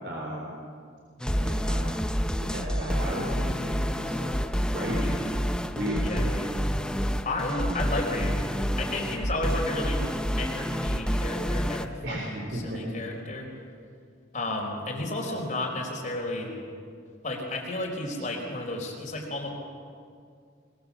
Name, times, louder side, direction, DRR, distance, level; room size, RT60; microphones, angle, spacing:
voice 1, 0.0-0.5 1.4-1.9 2.4-4.3 4.7-5.1 5.8-6.0 12.0-12.8, equal, 60° right, -3 dB, 4.0 m, -34 dB
sound 1, 1.2-11.9, equal, 5° left, 0.7 m, -28 dB
voice 2, 4.9-5.2 6.0-6.6 7.2-8.5 8.8-10.0 10.4-13.5 14.3-16.5 17.2-19.5, left 2 dB, 40° left, 0 dB, 4.2 m, -33 dB
22.5 x 22.0 x 7.2 m, 2.3 s
head